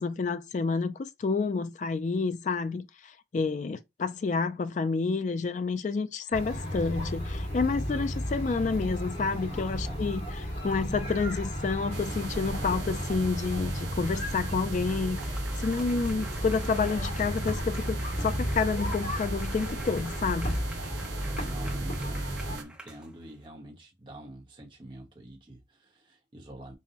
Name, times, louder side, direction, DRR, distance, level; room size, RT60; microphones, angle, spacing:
voice 1, 0.0-20.6, left 4 dB, 40° left, 0.3 m, -29 dB
sound 1, 6.3-22.6, equal, 80° left, 2.1 m, -33 dB
voice 2, 9.5-10.0 21.3-26.7, right 1 dB, 30° right, 1.0 m, -47 dB
sound 2, 11.9-22.6, right 6 dB, 75° right, 0.4 m, -43 dB
sound 3, 12.5-23.4, right 1 dB, 5° right, 0.7 m, -48 dB
5.3 x 2.1 x 2.8 m
head